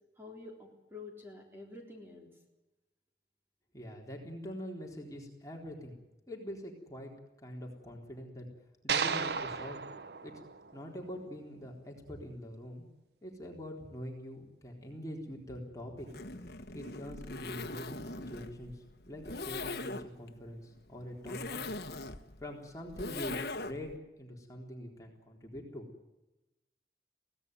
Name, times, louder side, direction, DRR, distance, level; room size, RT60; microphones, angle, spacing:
voice 1, 0.2-2.3, left 3 dB, 15° right, 0 dB, 3.7 m, -48 dB
voice 2, 3.7-6.0 6.3-8.5 8.8-9.8 10.2-10.4 10.7-12.8 13.2-16.1 16.7-21.7 22.4-23.9 24.2-25.9, equal, 20° left, 0 dB, 3.8 m, -44 dB
sound 1, 8.9-11.2, right 6 dB, 70° right, 0.8 m, -35 dB
Zipper (clothing), 16.0-24.0, left 2 dB, 65° left, 1.3 m, -41 dB
23.5 x 17.5 x 9.6 m, 1.0 s
head